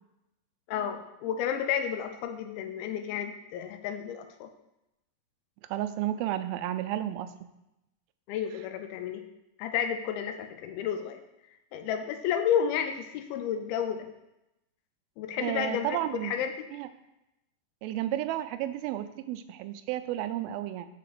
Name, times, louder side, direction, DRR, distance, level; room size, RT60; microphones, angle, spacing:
voice 1, 0.7-4.5 8.3-9.2 9.6-11.2 11.7-14.1 15.2-16.0 16.2-16.5, left 8 dB, 85° left, 7 dB, 2.5 m, -31 dB
voice 2, 5.7-7.3 15.4-16.4 16.7-16.9 17.8-20.9, right 12 dB, 85° right, 11 dB, 2.3 m, -32 dB
6.8 x 4.2 x 6.6 m, 0.90 s
omnidirectional pair, 4.3 m